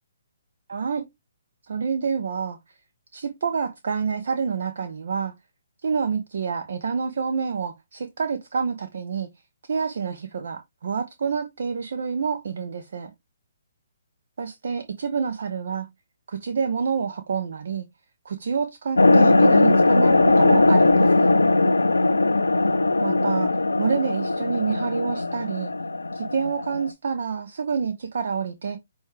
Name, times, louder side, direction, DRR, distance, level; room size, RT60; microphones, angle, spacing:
voice 1, 0.7-1.0 1.7-2.6 3.1-5.3 5.8-9.3 9.7-13.1 14.4-15.9 16.3-17.9 18.3-21.3 23.0-23.5 23.8-25.7 26.1-28.8, right 6 dB, 60° right, 0.5 m, -27 dB
sound 1, 19.0-26.9, left 2 dB, 85° left, 0.4 m, -19 dB
6.1 x 2.3 x 3.1 m
figure-of-eight pair, 135°, 0 cm